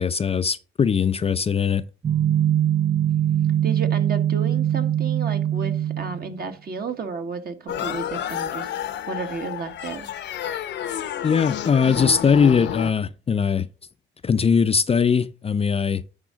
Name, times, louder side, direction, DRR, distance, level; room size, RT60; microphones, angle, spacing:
voice 1, 0.0-1.8 11.2-13.7 14.2-16.0, left 6 dB, 30° left, 0.5 m, -20 dB
sound 1, 2.0-6.4, right 10 dB, 30° right, 0.5 m, -22 dB
voice 2, 3.6-10.1, right 5 dB, 50° right, 1.5 m, -32 dB
sound 2, 7.7-12.9, left 10 dB, 65° left, 0.7 m, -30 dB
10.0 x 3.7 x 5.0 m
cardioid pair, 90°, 20 cm